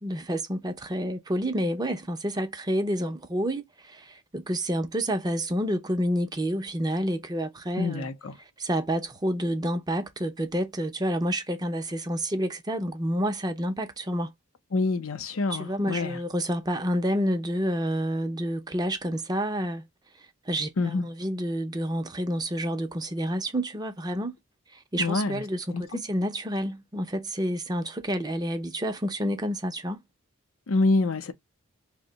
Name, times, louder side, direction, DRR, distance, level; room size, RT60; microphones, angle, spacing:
voice 1, 0.0-8.1 8.6-14.3 15.5-19.8 20.5-24.3 24.7-30.0, equal, 20° right, 0.5 m, -29 dB
voice 2, 7.8-8.4 14.7-16.2 20.8-21.0 25.0-25.4 25.7-26.0 30.7-31.3, left 3 dB, 75° left, 0.6 m, -26 dB
2.7 x 2.1 x 3.8 m
head